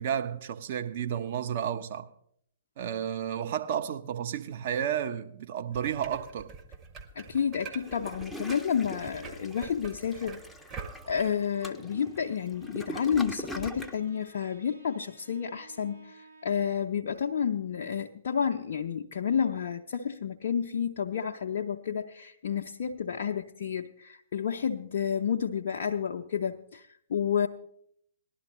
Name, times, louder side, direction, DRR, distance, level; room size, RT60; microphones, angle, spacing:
voice 1, 0.0-2.1 2.8-6.5, right 9 dB, 45° right, 0.8 m, -32 dB
sound 1, 5.7-11.3, right 5 dB, 25° right, 1.0 m, -45 dB
voice 2, 7.2-10.4 11.1-27.5, left 7 dB, 55° left, 0.5 m, -30 dB
Toilet flush, 7.8-14.0, equal, 5° left, 0.6 m, -43 dB
Bowed string instrument, 11.6-16.8, right 3 dB, 85° right, 1.9 m, -55 dB
18.5 x 11.5 x 3.1 m
figure-of-eight pair, 115°, 0 cm